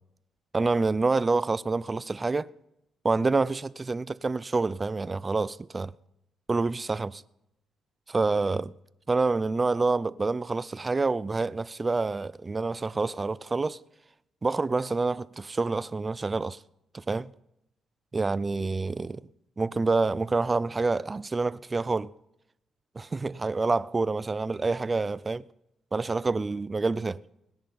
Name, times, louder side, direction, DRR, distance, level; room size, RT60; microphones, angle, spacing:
voice 1, 0.5-2.5 3.0-5.9 6.5-7.2 8.1-8.7 9.1-13.8 14.4-16.6 16.9-17.3 18.1-19.2 19.6-22.1 23.0-25.4 25.9-27.2, right 3 dB, 25° right, 0.4 m, -27 dB
18.0 x 10.5 x 5.5 m
cardioid pair, 90°, 0 cm